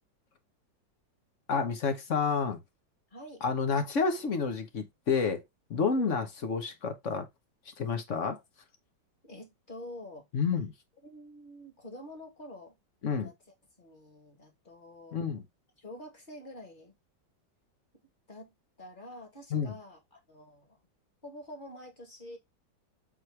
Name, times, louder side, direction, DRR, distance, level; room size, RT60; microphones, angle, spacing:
voice 1, 1.5-2.6 3.4-5.4 5.7-7.3 7.8-8.4 10.3-10.7 13.0-13.3 15.1-15.4 19.5-19.7, left 5 dB, 50° left, 1.2 m, -29 dB
voice 2, 3.1-3.4 6.0-6.2 9.2-10.3 11.0-12.8 13.1-13.3 13.8-15.2 15.8-16.9 18.3-20.8 21.2-22.4, left 1 dB, 25° left, 2.1 m, -47 dB
7.8 x 3.2 x 4.5 m
omnidirectional pair, 2.0 m